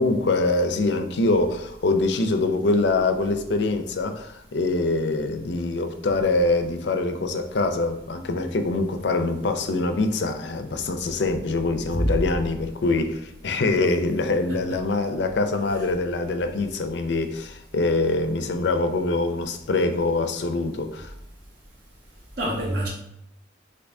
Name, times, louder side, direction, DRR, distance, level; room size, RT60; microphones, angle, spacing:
voice 1, 0.0-21.1, left 2 dB, 70° left, 8 dB, 0.5 m, -24 dB
voice 2, 22.4-22.9, equal, 60° right, -4 dB, 1.7 m, -26 dB
6.8 x 2.7 x 2.6 m, 0.80 s
head